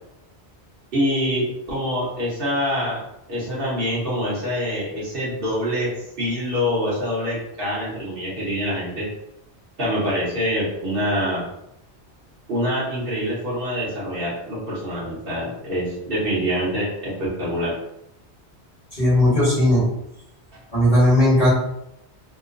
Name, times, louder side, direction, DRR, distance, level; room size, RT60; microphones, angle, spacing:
voice 1, 0.9-3.0 3.3-5.9 6.2-9.1 9.8-11.4 12.5-17.7, equal, 55° right, -7 dB, 1.1 m, -25 dB
voice 2, 18.9-19.9 20.7-21.5, left 1 dB, 35° left, -7 dB, 1.3 m, -17 dB
2.9 x 2.1 x 2.4 m, 0.83 s
omnidirectional pair, 1.1 m